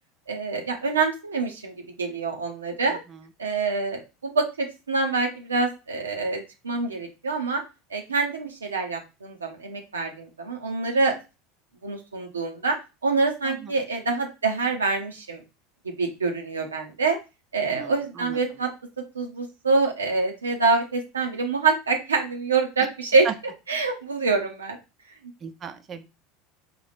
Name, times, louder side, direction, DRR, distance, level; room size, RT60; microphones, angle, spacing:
voice 1, 0.3-3.0 3.4-7.6 7.9-11.2 11.8-12.8 13.0-15.4 15.8-17.2 17.5-18.7 19.1-23.3 23.7-24.8, right 4 dB, 85° right, 2 dB, 0.6 m, -26 dB
voice 2, 17.6-18.4 23.2-23.3 25.4-26.1, right 7 dB, 35° right, 9 dB, 0.5 m, -36 dB
4.1 x 2.3 x 3.3 m, 0.28 s
figure-of-eight pair, 75°, 0 cm